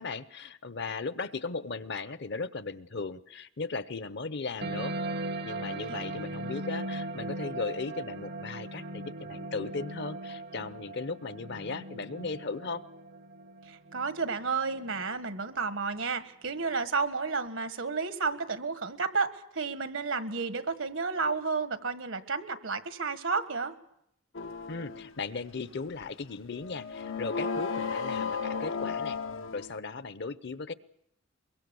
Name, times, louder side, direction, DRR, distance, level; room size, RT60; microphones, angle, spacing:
voice 1, 0.0-5.0 5.4-12.8 24.7-29.2 29.5-30.7, left 4 dB, 60° left, 14 dB, 0.9 m, -37 dB
sound 1, 4.6-15.6, right 2 dB, 55° right, 0.8 m, -39 dB
voice 2, 13.7-23.7, right 4 dB, 80° right, 10 dB, 1.6 m, -32 dB
sound 2, 24.3-25.1 26.0-26.1 26.6-29.7, left 5 dB, 85° left, 1.0 m, -34 dB
23.5 x 23.0 x 7.0 m, 0.76 s
head